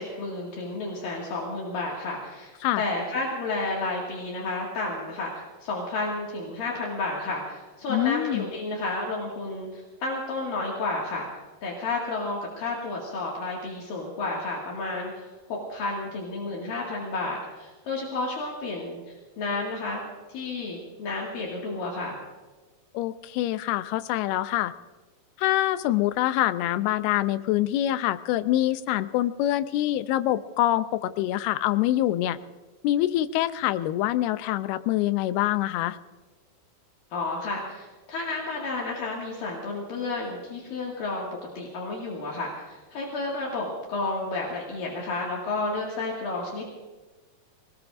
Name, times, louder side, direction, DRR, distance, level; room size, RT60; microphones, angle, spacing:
voice 1, 0.0-11.3 11.6-19.0 19.4-20.0 20.3-22.2 37.1-41.3 41.6-46.7, left 3 dB, 65° left, -3 dB, 3.7 m, -31 dB
voice 2, 7.9-8.5 22.9-24.7 25.4-32.4 32.8-36.0, left 14 dB, 90° left, 12 dB, 2.7 m, -25 dB
25.5 x 19.0 x 2.6 m, 1.3 s
omnidirectional pair, 4.5 m